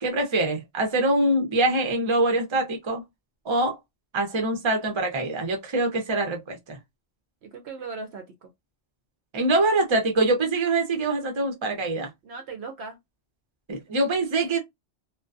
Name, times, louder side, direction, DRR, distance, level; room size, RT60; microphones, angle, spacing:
voice 1, 0.0-3.0 3.4-3.8 4.1-6.8 9.3-12.1 13.7-14.6, right 2 dB, 30° right, 0.6 m, -24 dB
voice 2, 7.4-8.5 12.2-13.0 14.3-14.6, right 4 dB, 65° right, 0.8 m, -38 dB
2.4 x 2.2 x 2.4 m
omnidirectional pair, 1.2 m